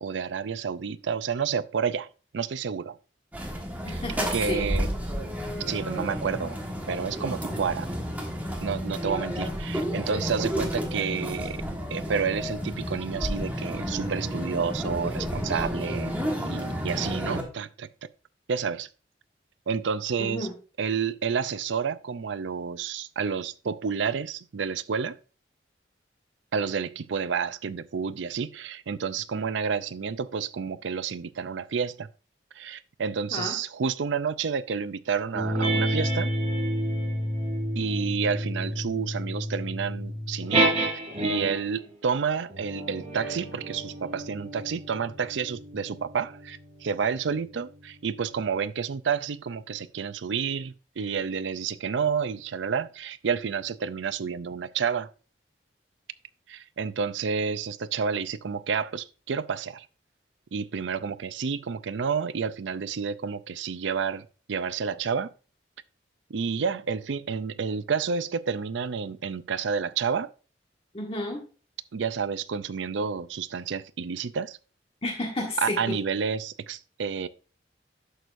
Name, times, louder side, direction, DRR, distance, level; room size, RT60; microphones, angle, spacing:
voice 1, 0.0-3.0 3.9-4.0 4.3-4.9 5.7-6.6 6.9-7.9 8.6-11.6 11.9-16.2 16.4-17.9 18.5-18.9 19.7-20.5 20.8-25.2 26.5-32.1 32.6-36.3 37.8-40.7 41.2-55.1 56.5-59.9 60.5-65.3 66.3-70.3 71.9-74.6 75.6-77.3, right 6 dB, 80° right, 0.5 m, -30 dB
sound 1, 3.3-17.4, equal, 10° right, 1.5 m, -31 dB
voice 2, 3.8-4.6 20.2-20.5 33.3-33.6 70.9-71.4 75.0-76.0, left 1 dB, 30° left, 1.3 m, -31 dB
sound 2, 35.3-41.7 42.5-47.4, right 1 dB, 35° right, 4.3 m, -30 dB
11.0 x 6.3 x 2.6 m
head